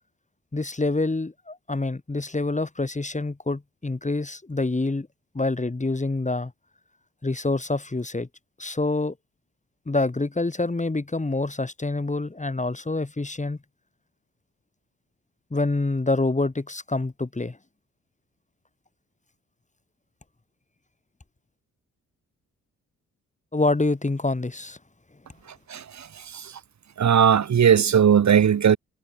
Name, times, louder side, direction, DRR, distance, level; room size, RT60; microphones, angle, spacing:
voice 1, 0.5-5.1 5.3-6.5 7.2-8.3 8.6-9.1 9.9-13.6 15.5-17.6 23.5-24.8, left 2 dB, 20° left, 2.8 m, -26 dB
voice 2, 27.0-28.8, right 8 dB, 50° right, 1.5 m, -17 dB
supercardioid pair, 55°, 35 cm